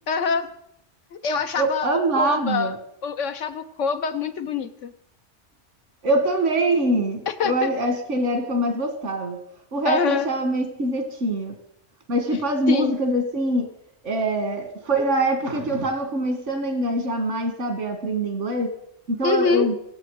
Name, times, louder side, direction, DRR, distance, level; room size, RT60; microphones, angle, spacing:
voice 1, 0.1-0.5 1.1-2.7 3.0-4.9 7.3-7.7 9.8-10.3 12.7-12.9 19.2-19.7, left 5 dB, 85° left, 9 dB, 1.4 m, -25 dB
voice 2, 1.6-2.8 6.0-9.4 9.7-11.5 12.1-13.7 14.0-18.7 19.1-19.7, right 1 dB, 80° right, 7 dB, 2.2 m, -24 dB
24.0 x 8.1 x 4.8 m, 0.77 s
omnidirectional pair, 1.2 m